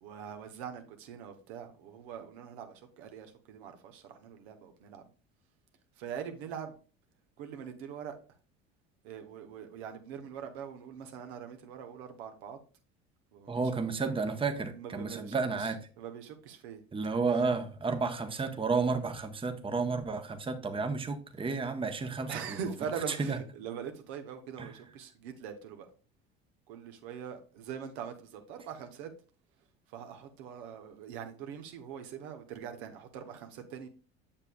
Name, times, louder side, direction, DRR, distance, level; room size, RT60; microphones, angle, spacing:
voice 1, 0.0-5.0 6.0-6.7 7.4-8.2 9.0-12.6 13.3-13.8 14.7-15.7 16.0-16.8 22.3-25.9 26.7-29.1 29.9-33.9, right 7 dB, 75° right, 1.0 m, -42 dB
voice 2, 13.5-15.8 16.9-22.6 23.1-23.4 24.6-24.7, right 4 dB, 15° right, 0.9 m, -32 dB
7.2 x 6.8 x 2.3 m
hypercardioid pair, 70°, 33 cm